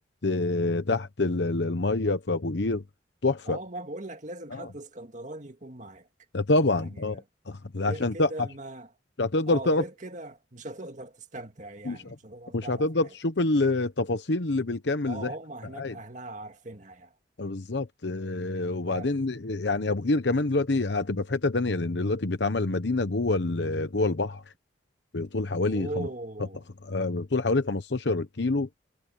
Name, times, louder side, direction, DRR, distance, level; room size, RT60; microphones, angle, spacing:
voice 1, 0.0-2.8 3.2-3.6 4.5-4.7 6.3-8.5 9.2-9.8 11.8-12.2 12.5-15.3 15.7-15.9 17.4-24.4 25.1-26.1 26.8-28.7, left 2 dB, 70° left, 1.0 m, -27 dB
voice 2, 3.5-6.1 6.7-7.2 7.8-8.9 9.4-12.9 15.0-17.1 18.9-19.1 25.7-26.6, right 2 dB, 45° right, 2.1 m, -40 dB
head